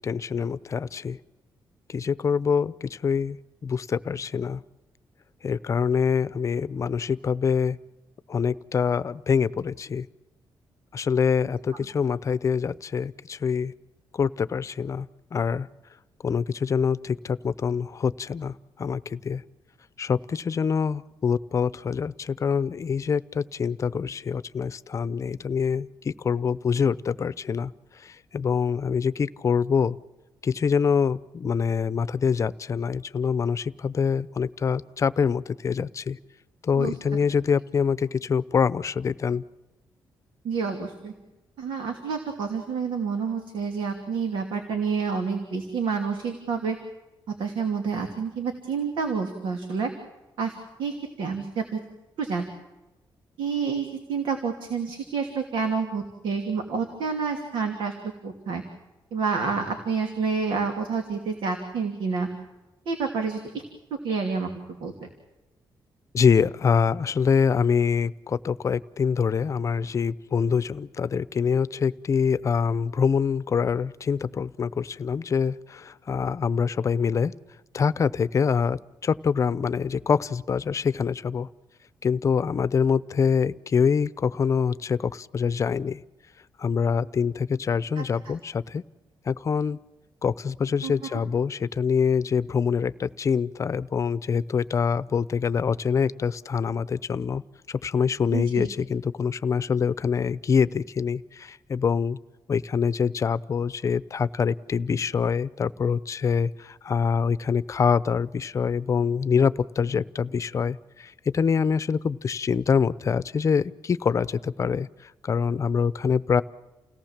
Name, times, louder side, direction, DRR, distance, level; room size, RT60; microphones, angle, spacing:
voice 1, 0.0-1.2 1.9-3.4 3.6-4.6 5.4-7.8 8.3-10.1 10.9-13.7 14.1-15.7 16.2-19.4 20.0-27.7 28.0-30.0 30.4-36.2 36.6-39.4 66.1-77.3 77.7-81.5 82.0-86.0 86.6-88.8 89.3-89.8 90.2-97.4 97.7-102.2 102.5-116.4, left 6 dB, 40° left, 16 dB, 0.7 m, -25 dB
voice 2, 40.4-41.1 41.6-46.8 47.4-49.9 50.4-51.8 52.2-52.5 53.4-57.9 58.2-58.6 59.1-62.3 62.9-63.4 64.0-64.9 88.0-88.1 90.8-91.2 98.3-98.7, right 5 dB, 90° right, 4 dB, 2.8 m, -28 dB
29.5 x 18.0 x 7.4 m, 1.1 s
cardioid pair, 135°, 8 cm